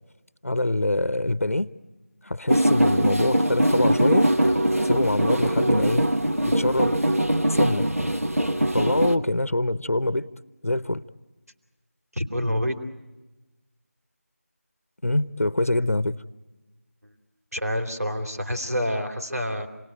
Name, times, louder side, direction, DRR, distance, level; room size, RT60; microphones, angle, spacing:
voice 1, 0.4-1.7 2.2-4.3 4.8-6.0 6.4-7.0 7.4-7.9 8.7-10.3 10.6-11.0 15.0-16.1, left 1 dB, 70° left, 17 dB, 0.9 m, -24 dB
sound 1, 2.5-9.2, right 1 dB, 70° right, 1.6 m, -22 dB
voice 2, 12.1-12.8 17.0-17.1 17.5-19.7, equal, 90° right, 4 dB, 3.0 m, -28 dB
27.5 x 20.0 x 9.2 m, 1.1 s
figure-of-eight pair, 170°, 8 cm